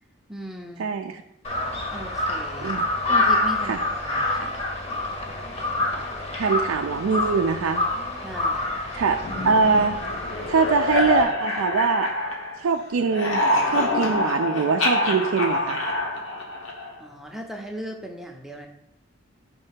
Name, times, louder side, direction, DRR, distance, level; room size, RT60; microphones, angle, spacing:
voice 1, 0.3-0.9 1.9-2.7 3.1-4.6 8.2-8.8 17.0-18.7, right 1 dB, ahead, 1 dB, 0.5 m, -37 dB
voice 2, 0.8-1.2 2.6-2.9 3.7-3.8 6.4-7.8 8.9-10.0 10.5-12.1 12.6-13.4 13.7-15.8, right 5 dB, 75° right, 4 dB, 0.4 m, -23 dB
Crow, 1.4-11.2, left 2 dB, 30° left, 0.8 m, -27 dB
sound 1, 9.2-12.7 13.0-17.0, left 2 dB, 70° left, 1.0 m, -26 dB
5.2 x 3.3 x 5.6 m, 0.78 s
head